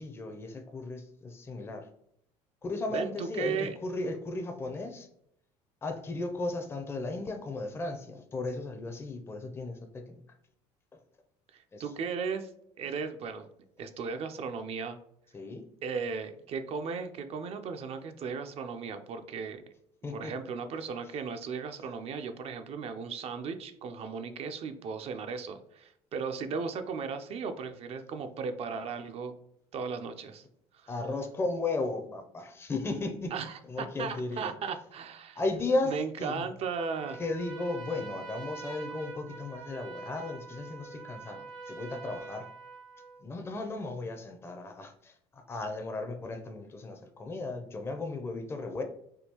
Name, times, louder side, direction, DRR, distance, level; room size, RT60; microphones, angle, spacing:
voice 1, 0.0-1.9 2.6-5.1 5.8-10.2 10.9-11.0 11.7-11.9 15.3-15.6 20.0-20.3 30.9-33.3 33.7-34.5 35.4-36.5 37.1-42.5 43.2-48.8, left 2 dB, 20° left, 5 dB, 0.5 m, -35 dB
voice 2, 2.9-3.7 11.5-12.5 12.8-13.5 13.8-15.0 15.8-19.6 20.1-29.3 29.7-30.4 30.7-30.9 33.3-35.4 35.9-37.2, right 5 dB, 50° right, 8 dB, 0.4 m, -36 dB
Trumpet, 36.7-43.2, right 4 dB, 65° right, 0.8 m, -44 dB
3.6 x 2.3 x 2.8 m, 0.73 s
supercardioid pair, 80°, 14 cm